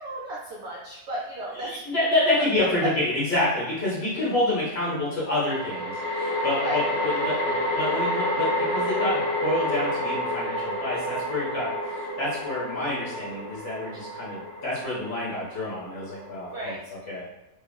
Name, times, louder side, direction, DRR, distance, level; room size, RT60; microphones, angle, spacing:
voice 1, 0.0-1.8 6.6-6.8 16.5-16.9, right 1 dB, 75° right, -5 dB, 0.6 m, -34 dB
voice 2, 1.5-16.7 17.1-17.2, left 1 dB, 50° left, -7 dB, 0.8 m, -28 dB
sound 1, 2.5-2.6 5.4-16.8, equal, 75° left, 1.1 m, -29 dB
2.9 x 2.3 x 2.2 m, 0.95 s
omnidirectional pair, 1.7 m